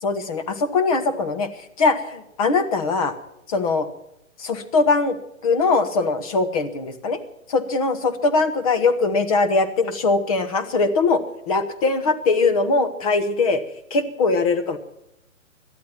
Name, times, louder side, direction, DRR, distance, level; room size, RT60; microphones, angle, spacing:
voice 1, 0.0-1.5 1.8-3.1 3.5-3.9 4.4-5.2 5.4-7.2 7.5-13.6 13.9-14.8, left 3 dB, 25° left, 8 dB, 1.2 m, -21 dB
18.0 x 11.5 x 5.9 m, 0.82 s
hypercardioid pair, 165°, 41 cm